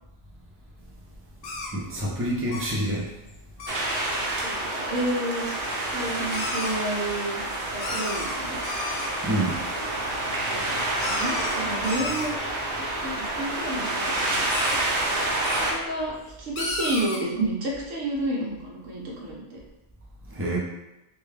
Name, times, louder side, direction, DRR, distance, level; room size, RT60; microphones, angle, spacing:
sound 1, 1.4-2.0 2.5-2.9 3.3-3.4 3.6-3.8 5.2-5.3 5.5-5.6 5.8-6.8 7.4-7.6 7.8-9.1 10.5-12.3 14.5-14.8 15.4-15.6 16.6-17.2, left 2 dB, 85° left, 1.1 m, -33 dB
voice 1, 1.7-3.1 9.2-9.6 20.3-20.6, right 1 dB, 20° right, -4 dB, 0.3 m, -27 dB
sound 2, 3.7-15.7, right 2 dB, 55° right, 0.8 m, -28 dB
voice 2, 4.4-5.5 5.9-7.4 7.7-8.6 10.4-12.4 13.0-14.8 15.6-19.6, right 1 dB, 90° right, -3 dB, 1.1 m, -31 dB
3.5 x 2.3 x 3.2 m, 0.93 s
omnidirectional pair, 1.3 m